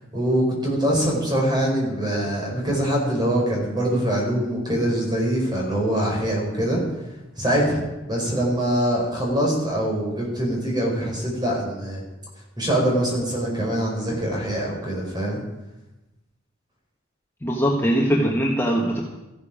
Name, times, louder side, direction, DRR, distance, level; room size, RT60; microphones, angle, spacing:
voice 1, 0.1-6.8 7.4-7.8 8.1-12.0 12.6-15.4, right 1 dB, 20° right, -2 dB, 4.5 m, -23 dB
voice 2, 17.4-19.0, equal, 15° left, -1 dB, 1.2 m, -21 dB
14.5 x 12.0 x 5.1 m, 1.0 s
head